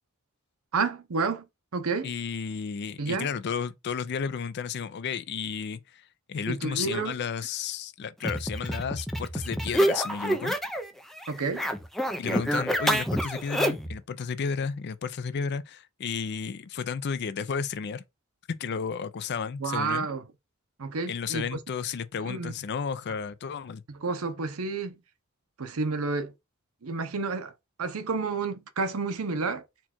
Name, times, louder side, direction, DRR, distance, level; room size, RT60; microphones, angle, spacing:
voice 1, 0.7-1.4 1.7-2.1 3.0-3.3 6.5-7.1 11.3-11.7 19.6-20.2 20.8-21.6 22.2-22.5 23.9-25.0 25.6-26.3 26.8-27.5 27.8-29.6, right 4 dB, 85° right, 0.7 m, -30 dB
voice 2, 2.0-6.0 6.3-10.6 12.2-18.0 18.5-20.1 21.1-23.8, left 6 dB, 55° left, 0.4 m, -32 dB
sound 1, 8.2-10.9 11.2-14.0, equal, ahead, 0.5 m, -28 dB
4.4 x 2.4 x 4.3 m
head